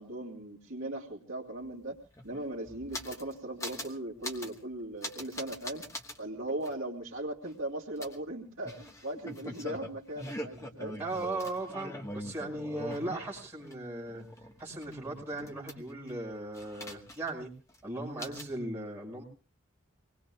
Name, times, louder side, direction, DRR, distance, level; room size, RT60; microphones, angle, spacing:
voice 1, 0.0-2.0 2.2-5.8 6.2-11.0, right 1 dB, 70° right, -2 dB, 2.4 m, -38 dB
sound 1, 1.6-1.7 1.9-3.3 3.6-3.9 4.2-4.6 5.0-6.2 6.6-6.7 8.0-13.7 14.1-16.1 16.5-17.4 17.7-17.8 18.2-18.5, left 1 dB, 15° left, 1.3 m, -42 dB
voice 2, 11.0-14.2 14.6-17.5 17.8-19.2, right 2 dB, 10° right, -4 dB, 5.6 m, -37 dB
26.0 x 20.0 x 2.3 m, 0.36 s
head